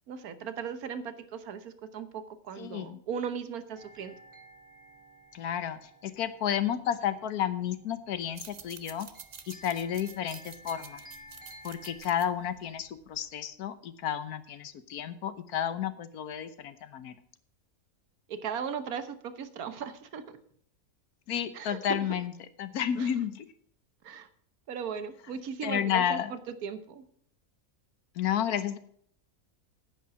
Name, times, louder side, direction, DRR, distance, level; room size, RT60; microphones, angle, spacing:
voice 1, 0.1-4.2 18.3-20.2 21.5-22.0 23.0-23.1 24.0-24.3 24.7-27.0, right 7 dB, 75° right, 12 dB, 1.4 m, -37 dB
voice 2, 2.6-3.0 5.3-9.1 9.5-11.0 11.6-17.1 21.3-22.3 22.6-23.5 25.6-26.3 28.1-28.8, left 9 dB, 85° left, 13 dB, 1.4 m, -31 dB
sound 1, 3.7-12.0, equal, 20° right, 1.9 m, -54 dB
sound 2, 8.2-13.4, right 6 dB, 45° right, 0.5 m, -49 dB
9.9 x 8.6 x 5.9 m, 0.63 s
omnidirectional pair, 1.6 m